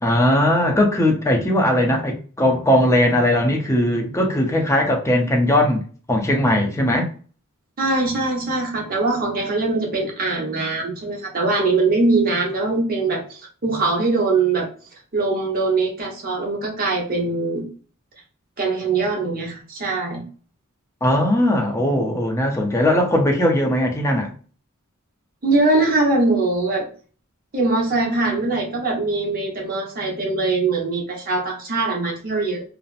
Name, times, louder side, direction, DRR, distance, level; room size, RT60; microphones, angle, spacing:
voice 1, 0.0-5.8 6.1-7.1 21.0-24.3, left 1 dB, 15° left, 0.5 m, -19 dB
voice 2, 7.8-14.7 15.1-17.6 18.6-20.2 25.4-26.9 27.5-32.6, right 3 dB, 45° right, 0.8 m, -22 dB
2.7 x 2.0 x 2.4 m
head